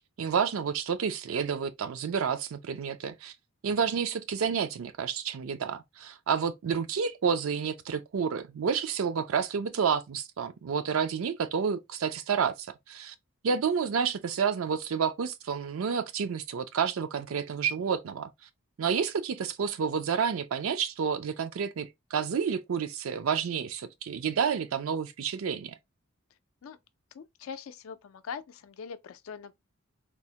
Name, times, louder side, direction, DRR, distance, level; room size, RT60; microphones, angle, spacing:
voice 1, 0.2-3.3 3.6-13.1 13.4-18.3 18.8-25.8, right 6 dB, 70° right, 0.4 m, -30 dB
voice 2, 27.1-29.5, left 6 dB, 70° left, 0.4 m, -42 dB
3.3 x 2.0 x 2.7 m
head